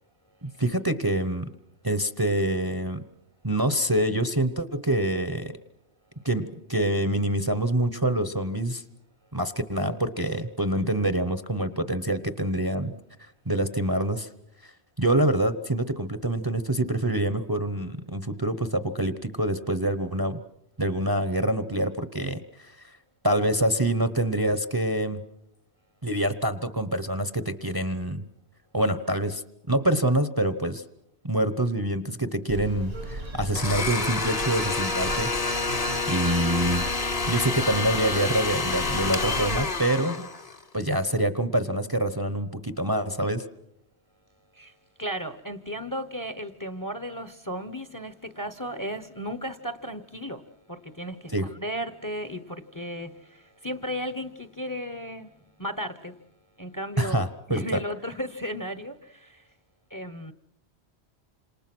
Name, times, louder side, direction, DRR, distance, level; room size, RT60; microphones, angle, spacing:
voice 1, 0.4-1.5 1.8-3.0 3.4-5.5 6.2-8.8 9.3-12.9 13.5-14.3 14.6-14.7 15.0-20.4 20.8-22.4 23.2-25.2 26.0-28.2 28.7-29.4 29.7-30.8 31.2-35.3 36.1-36.9 37.3-40.3 40.7-43.4 51.3-51.5 57.0-57.7, right 1 dB, 20° right, 12 dB, 1.0 m, -26 dB
sound 1, 32.5-39.7, right 2 dB, 80° right, 2.5 m, -37 dB
Domestic sounds home sounds, 33.6-40.6, left 4 dB, 35° left, 1.3 m, -28 dB
voice 2, 45.0-55.3 55.6-56.2 56.6-59.4 59.9-60.3, equal, 20° left, 11 dB, 1.0 m, -35 dB
28.5 x 27.0 x 6.2 m, 0.76 s
omnidirectional pair, 1.1 m